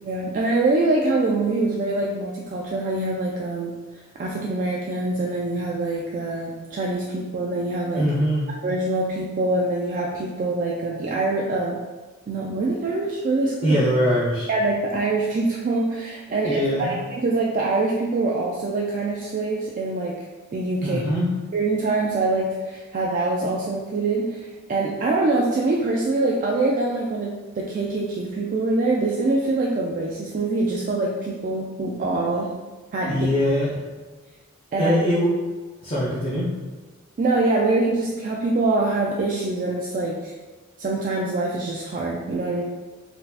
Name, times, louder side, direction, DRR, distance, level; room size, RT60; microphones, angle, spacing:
voice 1, 0.0-8.1 8.6-11.8 12.3-13.8 14.5-20.2 20.5-21.0 21.5-32.5 32.9-33.3 34.7-34.9 37.2-40.3 40.8-42.6, right 2 dB, 40° right, -2 dB, 0.3 m, -24 dB
voice 2, 7.9-8.4 13.6-14.5 16.4-16.9 20.8-21.3 33.1-33.7 34.7-35.3 35.8-36.4, equal, 30° left, -8 dB, 0.6 m, -22 dB
4.0 x 2.7 x 2.4 m, 1.3 s
head